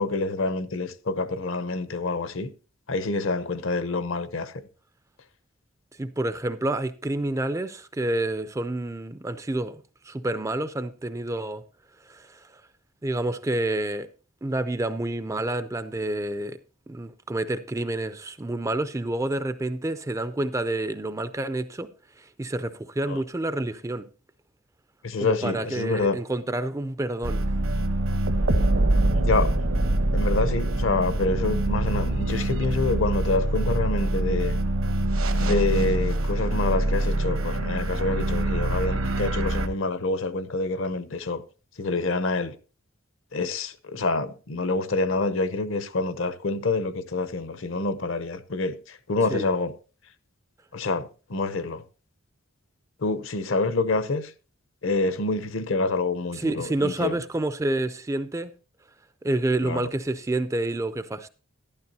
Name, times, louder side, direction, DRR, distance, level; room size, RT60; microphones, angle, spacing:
voice 1, 0.0-2.5 2.9-4.5 23.1-23.2 25.0-26.2 29.1-29.5 30.1-34.6 35.3-41.4 41.8-42.6 43.3-49.7 50.7-51.8 53.0-54.3 54.8-57.1 59.6-59.8, left 3 dB, 65° left, 0.8 m, -27 dB
voice 2, 6.0-11.6 12.1-12.5 13.0-14.1 14.4-16.6 16.9-21.9 22.2-24.1 25.2-27.4 49.3-49.5 56.4-58.5 59.2-61.3, right 2 dB, 15° right, 0.4 m, -28 dB
sound 1, 27.2-39.7, right 1 dB, 70° right, 1.1 m, -24 dB
12.0 x 11.5 x 2.8 m
head